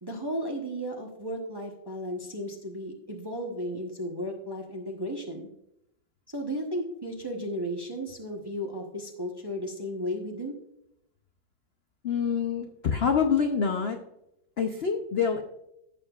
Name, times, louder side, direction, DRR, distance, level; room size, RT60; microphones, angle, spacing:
voice 1, 0.0-5.5 6.3-10.6, equal, 20° right, 1 dB, 0.7 m, -34 dB
voice 2, 12.0-14.0 14.6-15.4, left 6 dB, 70° left, 4 dB, 0.6 m, -26 dB
15.0 x 6.9 x 2.4 m, 0.82 s
omnidirectional pair, 2.0 m